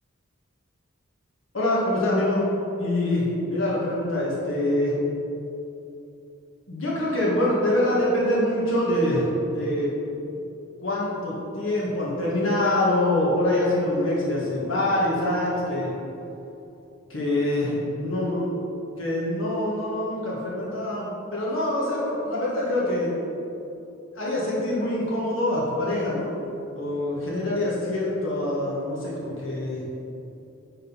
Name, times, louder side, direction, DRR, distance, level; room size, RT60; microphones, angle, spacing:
voice 1, 1.5-2.5 2.8-5.0 6.7-9.9 10.8-15.9 17.1-18.5 19.0-23.2 24.1-26.3 26.7-29.9, left 1 dB, 65° left, -6 dB, 1.7 m, -25 dB
9.6 x 4.1 x 5.7 m, 2.9 s
head